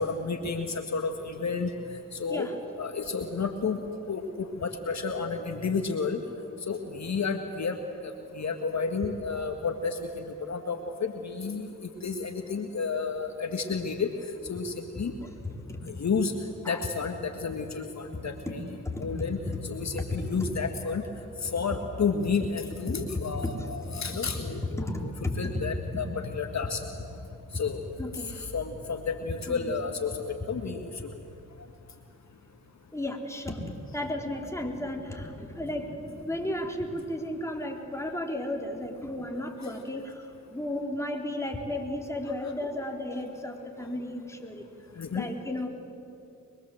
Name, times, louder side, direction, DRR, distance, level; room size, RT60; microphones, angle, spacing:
voice 1, 0.0-1.7 2.1-2.5 2.8-3.8 4.1-6.2 6.7-7.8 8.0-11.6 12.0-14.1 14.5-15.1 16.0-16.3 16.7-18.6 19.0-19.4 19.7-21.0 21.4-24.6 25.4-26.0 26.3-26.8 27.5-27.9 28.3-31.1 45.0-45.3, left 5 dB, 55° left, 5 dB, 1.7 m, -31 dB
voice 2, 15.4-15.8 16.6-16.9 18.1-18.6 18.8-19.2 19.4-19.6 19.8-20.5 21.4-21.5 22.9-23.0 23.4-24.4 24.8-25.8 27.5-27.6 28.0-28.4 29.5-29.7 32.9-44.6 45.1-45.7, left 1 dB, 10° left, 1 dB, 4.1 m, -34 dB
23.5 x 22.5 x 7.8 m, 2.6 s
supercardioid pair, 50°, 33 cm